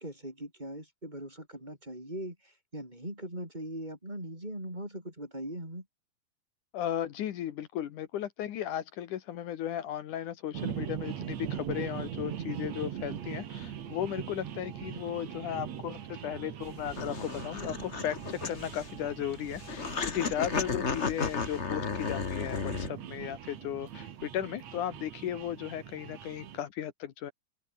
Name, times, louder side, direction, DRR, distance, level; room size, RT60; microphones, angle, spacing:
voice 1, 0.0-5.9, right 1 dB, 10° right, 6.7 m, -40 dB
voice 2, 6.7-27.3, left 10 dB, 75° left, 2.8 m, -36 dB
sound 1, 10.5-26.6, right 9 dB, 60° right, 2.7 m, -41 dB
sound 2, 16.6-22.9, left 5 dB, 35° left, 1.2 m, -34 dB
omnidirectional pair, 3.7 m